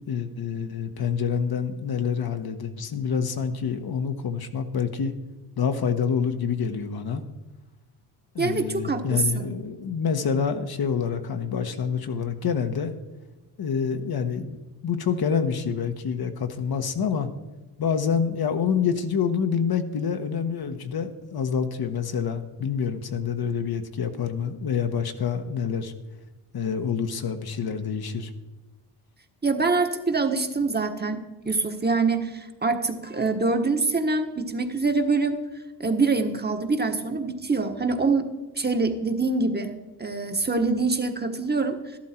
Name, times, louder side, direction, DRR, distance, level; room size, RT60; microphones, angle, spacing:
voice 1, 0.1-5.1 5.6-7.2 8.3-12.9 13.6-14.6 14.8-17.3 17.8-25.9 26.5-28.3, left 6 dB, 45° left, 7 dB, 1.3 m, -27 dB
voice 2, 8.4-9.5 29.4-31.2 31.4-35.4 35.8-38.3 38.6-39.7 40.0-41.7, right 3 dB, 20° right, 6 dB, 1.4 m, -24 dB
12.5 x 12.0 x 4.4 m, 1.1 s
supercardioid pair, 70°, 50 cm